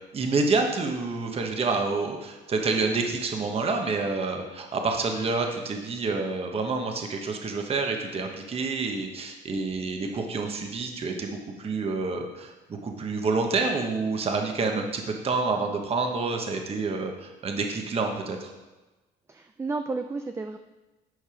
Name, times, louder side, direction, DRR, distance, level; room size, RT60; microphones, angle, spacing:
voice 1, 0.1-12.5 12.8-18.5, right 3 dB, 35° right, 3 dB, 1.1 m, -28 dB
voice 2, 19.3-20.6, right 3 dB, 15° right, 7 dB, 0.4 m, -32 dB
9.6 x 5.4 x 5.0 m, 1.1 s
cardioid pair, 110°, 17 cm